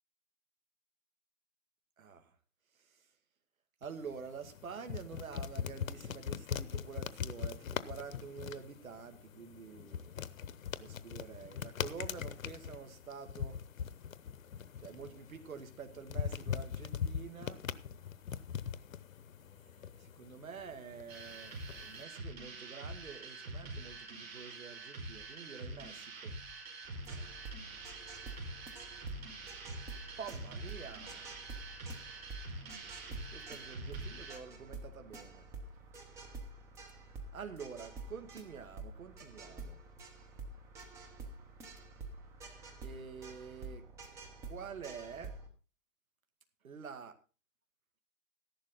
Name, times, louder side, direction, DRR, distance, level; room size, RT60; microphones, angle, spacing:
voice 1, 2.0-2.3 2.8-3.1 3.8-10.1 10.8-13.6 14.8-17.6 20.0-26.3 30.2-31.3 33.3-35.4 37.3-39.8 42.8-43.8 44.4-45.4 46.6-47.2, right 6 dB, 80° right, 6 dB, 2.2 m, -48 dB
sound 1, 3.8-22.0, left 8 dB, 75° left, 0.9 m, -42 dB
sound 2, 21.1-34.4, right 2 dB, 45° right, 5.2 m, -46 dB
sound 3, 26.8-45.5, right 3 dB, 5° right, 0.8 m, -48 dB
14.0 x 11.5 x 3.9 m, 0.33 s
hypercardioid pair, 155°, 41 cm